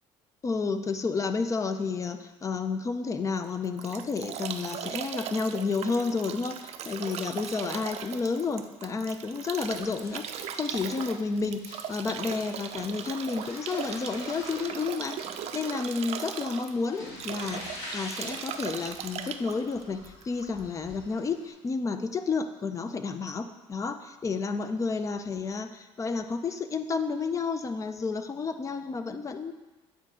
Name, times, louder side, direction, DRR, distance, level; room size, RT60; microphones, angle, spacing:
voice 1, 0.4-15.2 15.5-29.5, left 4 dB, 25° left, 9 dB, 0.5 m, -31 dB
Bathtub (filling or washing) / Drip / Trickle dribble, 3.4-20.6, right 9 dB, 55° right, 0.5 m, -38 dB
sound 1, 9.5-21.5, left 1 dB, 50° left, 2.4 m, -46 dB
9.0 x 4.0 x 3.7 m, 1.2 s
cardioid pair, 115°, 13 cm